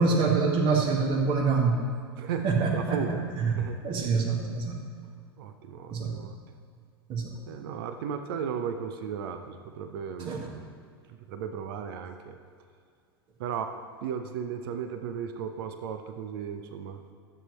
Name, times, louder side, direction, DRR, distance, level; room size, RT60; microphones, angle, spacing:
voice 1, 0.0-1.8 2.4-3.0 3.4-3.5 3.8-4.8 5.9-6.2 7.1-7.3 10.2-10.5, right 4 dB, 40° right, 1 dB, 1.8 m, -25 dB
voice 2, 2.2-3.2 3.6-3.8 5.4-6.4 7.5-10.3 11.1-12.4 13.4-13.7 14.0-17.0, right 7 dB, 60° right, 7 dB, 0.7 m, -35 dB
12.5 x 7.8 x 3.2 m, 2.2 s
hypercardioid pair, 90°, 13 cm